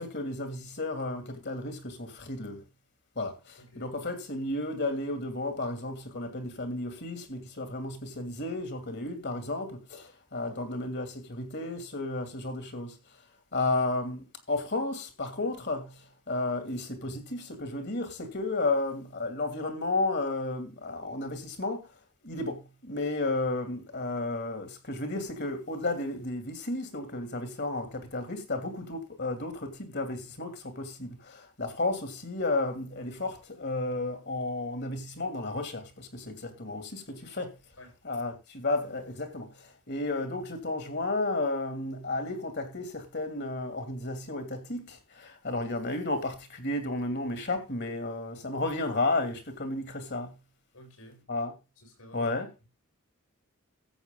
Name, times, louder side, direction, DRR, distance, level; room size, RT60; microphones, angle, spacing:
voice 1, 0.0-2.6 3.2-13.0 13.5-21.9 22.2-37.6 38.0-50.3 51.3-51.5 52.1-52.5, left 2 dB, 50° left, 2.7 m, -33 dB
voice 2, 50.7-51.2 51.8-52.4, left 1 dB, 75° left, 7.2 m, -50 dB
14.0 x 8.2 x 3.8 m
head